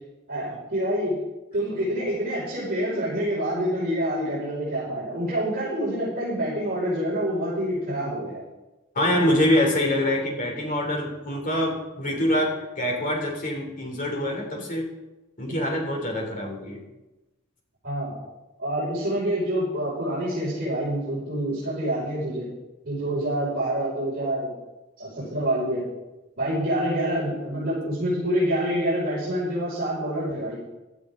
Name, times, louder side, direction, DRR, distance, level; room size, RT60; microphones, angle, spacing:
voice 1, 0.3-1.2 1.5-8.4 17.8-18.1 18.6-22.5 22.8-24.5 25.0-25.8 26.4-30.6, right 1 dB, 50° right, -9 dB, 5.8 m, -27 dB
voice 2, 8.9-14.9 15.4-16.8, left 1 dB, 40° left, 1 dB, 3.3 m, -25 dB
17.0 x 12.0 x 3.9 m, 1.0 s
head